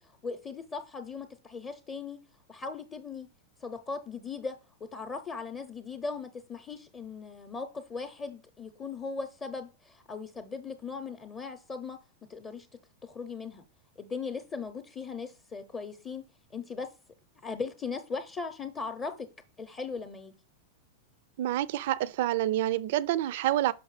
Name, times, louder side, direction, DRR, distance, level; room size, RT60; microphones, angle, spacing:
voice 1, 0.0-2.2 2.5-3.3 3.6-12.0 12.3-12.7 13.0-13.6 14.0-16.2 16.5-16.9 17.4-19.3 19.6-20.3, left 4 dB, 25° left, 0.7 m, -38 dB
voice 2, 21.4-23.7, right 13 dB, 60° right, 0.3 m, -27 dB
5.6 x 5.4 x 3.2 m
figure-of-eight pair, 95°, 0 cm